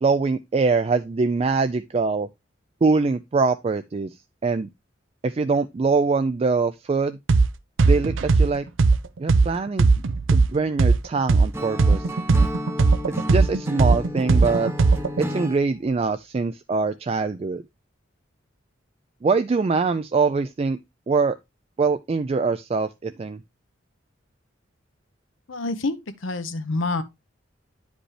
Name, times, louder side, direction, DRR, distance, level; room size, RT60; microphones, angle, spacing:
voice 1, 0.0-2.3 2.8-4.1 4.4-4.7 5.2-7.2 7.9-8.7 9.2-9.9 10.3-12.1 13.1-14.7 15.2-17.6 19.2-20.8 21.1-21.4 21.8-23.4, right 4 dB, 30° right, 0.3 m, -23 dB
sound 1, 7.3-7.5 7.8-11.5 11.8-15.2, right 3 dB, 80° right, 0.6 m, -18 dB
Acoustic guitar / Strum, 11.5-15.6, equal, 15° right, 0.7 m, -32 dB
voice 2, 25.5-27.0, left 3 dB, 90° left, 0.9 m, -27 dB
9.9 x 5.2 x 3.1 m
head